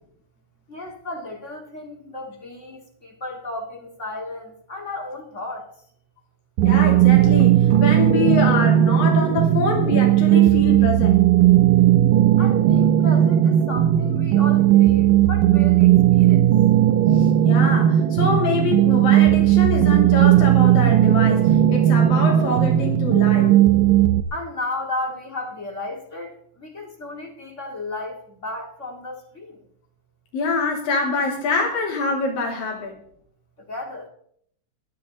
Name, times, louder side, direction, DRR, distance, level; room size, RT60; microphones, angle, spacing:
voice 1, 0.7-5.7 12.4-16.4 24.3-29.6 33.7-34.1, left 2 dB, 25° left, 1 dB, 2.0 m, -34 dB
voice 2, 6.6-11.2 17.1-23.6 30.3-33.0, left 3 dB, 90° left, -1 dB, 4.7 m, -25 dB
sound 1, 6.6-24.2, right 12 dB, 80° right, 2.3 m, -16 dB
20.5 x 12.5 x 4.0 m, 0.66 s
omnidirectional pair, 3.9 m